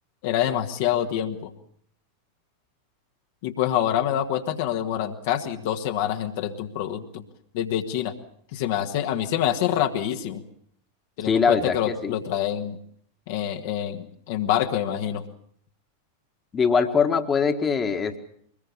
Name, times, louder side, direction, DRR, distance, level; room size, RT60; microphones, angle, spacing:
voice 1, 0.2-1.5 3.4-7.2 7.5-8.1 8.5-10.4 11.2-12.8 13.3-15.2, left 10 dB, 50° left, 4 dB, 1.6 m, -26 dB
voice 2, 11.2-12.1 16.5-18.2, left 5 dB, 20° left, 7 dB, 1.8 m, -22 dB
23.5 x 20.5 x 7.2 m, 0.66 s
figure-of-eight pair, 90°, 0 cm